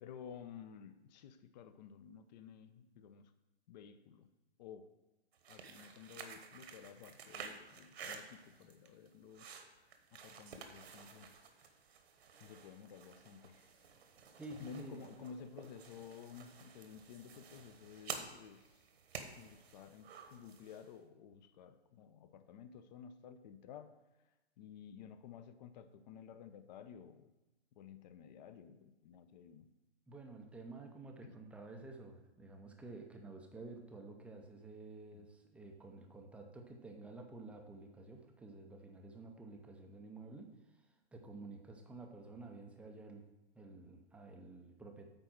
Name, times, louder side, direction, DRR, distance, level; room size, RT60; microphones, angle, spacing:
voice 1, 0.0-3.3 3.7-4.3 4.6-4.9 5.5-11.3 11.6-11.7 12.4-13.7 14.6-18.9 19.4-24.0 24.6-27.3 27.7-29.7 31.2-31.4 35.1-35.3, left 7 dB, 40° left, 11 dB, 0.7 m, -53 dB
sound 1, 5.3-20.9, right 6 dB, 65° right, 1.3 m, -52 dB
voice 2, 14.3-15.1 30.1-43.3 43.5-45.1, right 3 dB, 5° right, 3 dB, 0.5 m, -51 dB
8.9 x 4.2 x 6.0 m, 1.1 s
hypercardioid pair, 125°, 33 cm